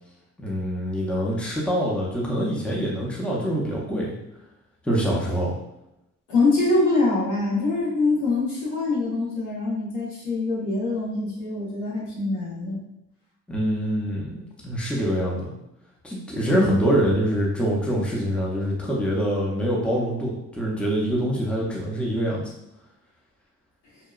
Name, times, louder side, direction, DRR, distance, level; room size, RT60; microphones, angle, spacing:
voice 1, 0.4-4.1 4.8-5.5 13.5-15.5 16.0-22.5, equal, 5° left, -4 dB, 0.6 m, -25 dB
voice 2, 6.3-12.8 16.5-16.9, left 3 dB, 75° left, -5 dB, 1.1 m, -24 dB
2.8 x 2.1 x 2.3 m, 0.87 s
cardioid pair, 90°, 30 cm